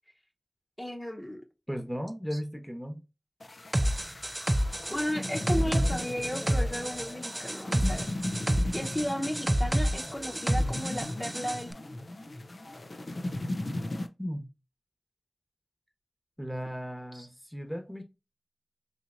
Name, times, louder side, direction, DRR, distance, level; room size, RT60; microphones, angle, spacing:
voice 1, 0.8-1.4 4.9-8.1 8.7-11.7 17.1-17.3, equal, 35° left, 0.9 m, -34 dB
voice 2, 1.7-3.0 14.2-14.5 16.4-18.0, equal, 5° left, 0.9 m, -36 dB
sound 1, 3.4-14.1, left 1 dB, 85° left, 0.4 m, -37 dB
sound 2, 3.7-11.6, equal, 35° right, 0.4 m, -29 dB
4.3 x 2.8 x 2.5 m
wide cardioid pair, 40°, 0 cm